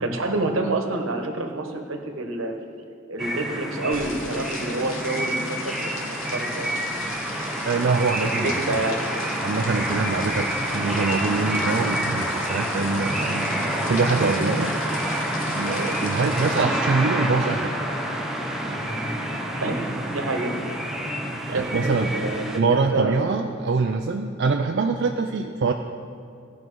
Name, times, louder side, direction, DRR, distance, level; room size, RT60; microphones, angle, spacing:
voice 1, 0.0-2.5 3.1-6.7 8.2-9.0 13.8-13.9 15.8-16.0 19.6-19.8 20.1-20.5 21.5-23.3, right 2 dB, 80° right, 3 dB, 1.2 m, -28 dB
sound 1, 3.2-22.6, right 1 dB, ahead, 0.8 m, -28 dB
sound 2, 3.9-16.6, left 3 dB, 85° left, 1.3 m, -39 dB
voice 2, 7.6-8.8 9.4-13.5 13.9-14.8 15.5-17.7 21.5-22.1 22.6-25.7, right 4 dB, 55° right, 4 dB, 0.4 m, -24 dB
16.0 x 5.5 x 4.6 m, 2.4 s
head